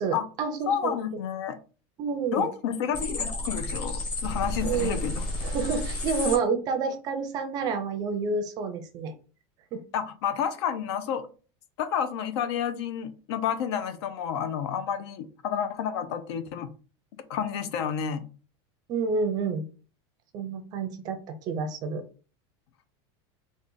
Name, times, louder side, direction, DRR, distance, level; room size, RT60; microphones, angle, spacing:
voice 1, 0.0-0.9 2.0-2.4 4.6-5.0 5.4-9.1 9.7-9.8 18.9-19.6 20.3-22.0, right 5 dB, 30° right, 0.5 m, -29 dB
voice 2, 0.7-1.6 2.3-5.3 9.9-11.3 11.8-16.7 17.3-18.3, left 8 dB, 75° left, 0.7 m, -30 dB
sound 1, 2.9-6.4, left 2 dB, 30° left, 1.3 m, -31 dB
3.9 x 2.4 x 3.8 m
supercardioid pair, 180°, 14 cm